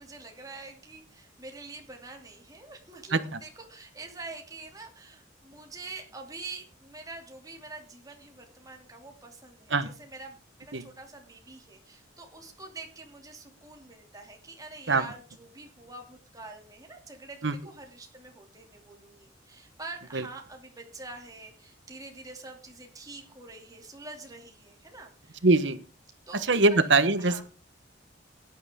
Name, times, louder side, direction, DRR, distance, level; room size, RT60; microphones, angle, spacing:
voice 1, 0.0-25.4 26.3-26.4 26.7-26.8 27.2-27.4, right 3 dB, 20° right, 2 dB, 2.7 m, -45 dB
voice 2, 25.4-25.8 26.3-27.4, right 3 dB, 70° right, 12 dB, 1.1 m, -23 dB
16.5 x 10.5 x 3.7 m, 0.34 s
head